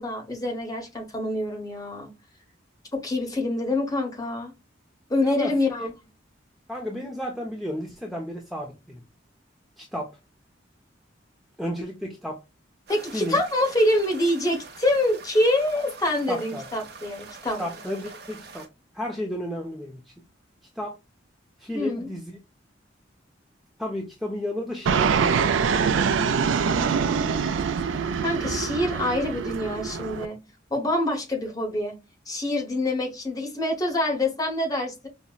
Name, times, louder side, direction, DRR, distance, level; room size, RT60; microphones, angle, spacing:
voice 1, 0.0-2.1 2.9-4.5 5.1-5.9 12.9-17.6 21.7-22.1 28.2-30.4 30.7-32.0 32.3-35.1, left 1 dB, 20° left, 0.9 m, -26 dB
voice 2, 5.2-5.9 6.7-9.0 9.8-10.2 11.6-12.4 13.1-13.4 16.3-16.6 17.6-18.7 18.9-20.0 20.8-20.9 21.6-22.4 23.8-25.2, equal, ahead, 0.4 m, -32 dB
sound 1, 12.9-18.7, right 4 dB, 60° right, 0.7 m, -44 dB
Fixed-wing aircraft airplane, 24.9-30.3, right 6 dB, 85° right, 0.4 m, -24 dB
5.2 x 2.0 x 2.3 m
head